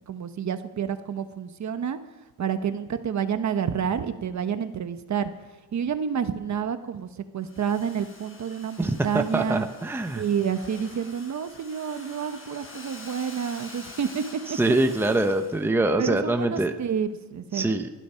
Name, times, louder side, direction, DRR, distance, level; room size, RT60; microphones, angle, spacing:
voice 1, 0.1-2.0 2.4-5.3 5.7-7.1 7.3-9.6 10.2-14.2 14.5-14.6 16.0-17.6, right 7 dB, 45° right, 9 dB, 1.1 m, -29 dB
Domestic sounds home sounds, 7.4-15.7, left 2 dB, 30° left, 4.2 m, -46 dB
voice 2, 8.8-10.2 14.5-16.7 17.5-17.9, right 2 dB, 5° right, 6 dB, 0.9 m, -24 dB
20.5 x 12.5 x 5.7 m, 1.2 s
cardioid pair, 140°, 40 cm